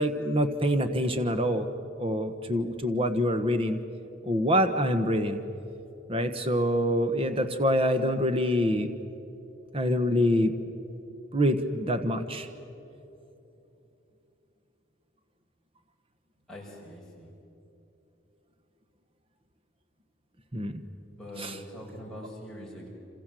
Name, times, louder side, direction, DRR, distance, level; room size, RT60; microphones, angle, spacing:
voice 1, 0.0-1.7 2.0-3.8 4.2-5.4 6.1-8.9 9.7-10.5 11.3-12.5 20.5-20.7 21.4-21.6, equal, 25° right, 8 dB, 1.2 m, -25 dB
voice 2, 16.5-17.3 21.1-22.9, equal, 5° left, -4 dB, 5.8 m, -43 dB
28.0 x 27.5 x 7.7 m, 2.9 s
head